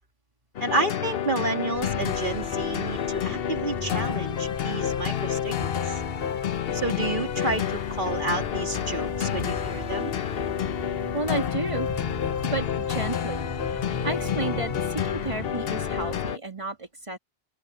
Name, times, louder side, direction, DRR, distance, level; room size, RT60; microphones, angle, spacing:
sound 1, 0.5-16.4, left 9 dB, 65° left, 1.0 m, -29 dB
voice 1, 0.6-6.0 6.7-7.6 8.0-10.1, right 2 dB, 50° right, 2.7 m, -30 dB
sound 2, 1.7-16.3, left 1 dB, 25° left, 2.2 m, -38 dB
voice 2, 10.8-11.9 12.4-17.2, right 2 dB, 30° right, 2.3 m, -32 dB
open air
omnidirectional pair, 1.1 m